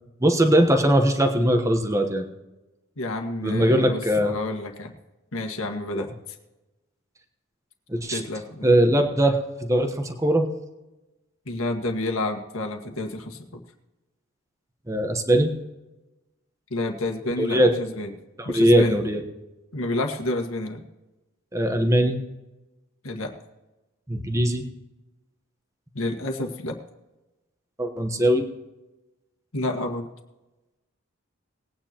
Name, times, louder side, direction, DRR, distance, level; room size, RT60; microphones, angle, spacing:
voice 1, 0.2-2.2 3.4-4.4 5.9-6.0 7.9-8.2 8.6-10.5 14.9-15.5 17.4-17.7 18.5-19.2 21.5-22.2 24.1-24.6 27.8-28.5, right 1 dB, 15° right, 5 dB, 1.1 m, -20 dB
voice 2, 3.0-4.9 5.3-6.1 8.1-8.7 11.5-13.6 16.7-18.1 18.5-19.1 19.7-20.8 23.0-23.3 25.9-26.8 29.5-30.1, left 2 dB, 75° left, 3 dB, 1.7 m, -29 dB
20.5 x 9.4 x 2.9 m, 1.0 s
head